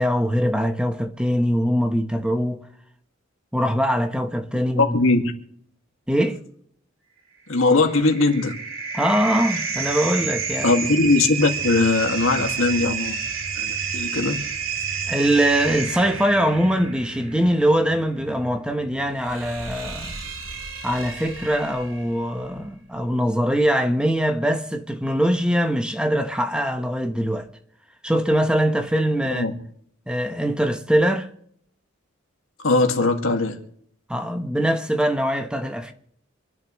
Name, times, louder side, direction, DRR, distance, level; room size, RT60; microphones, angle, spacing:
voice 1, 0.0-2.6 3.5-5.0 6.1-6.4 8.9-10.7 15.1-20.2 20.8-27.5 28.0-29.5 30.1-31.3 34.1-35.9, equal, 5° right, 1.1 m, -22 dB
voice 2, 4.8-5.3 7.5-8.6 10.6-13.2 13.6-14.4 29.3-29.5 32.6-33.6, left 3 dB, 75° left, 2.0 m, -20 dB
sound 1, 7.6-22.2, right 6 dB, 80° right, 2.4 m, -30 dB
27.0 x 10.5 x 3.1 m
head